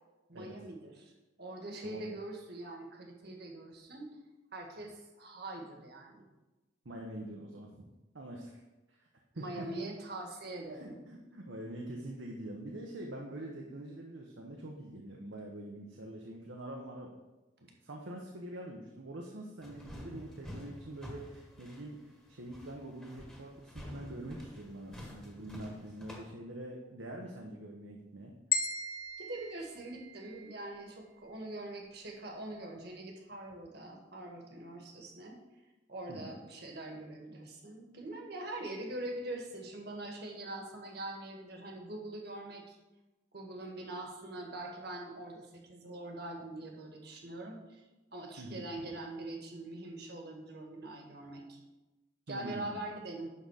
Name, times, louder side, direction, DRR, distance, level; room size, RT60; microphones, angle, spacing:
voice 1, 0.3-1.1 1.4-4.1 4.5-6.2 9.3-11.0 29.2-35.4 35.9-42.8 43.3-47.8 48.1-51.6 52.3-53.3, right 2 dB, 55° right, 1 dB, 1.7 m, -43 dB
voice 2, 6.8-7.9 8.1-8.6 8.9-9.1 9.3-9.7 10.7-17.1 17.6-28.3 36.1-36.3 48.4-48.6 52.3-52.8, right 1 dB, 75° right, 0 dB, 1.1 m, -45 dB
sound 1, 19.6-26.3, left 1 dB, 5° left, 1.4 m, -49 dB
sound 2, 28.5-30.7, left 5 dB, 50° left, 0.8 m, -36 dB
11.0 x 3.9 x 6.5 m, 1.1 s
head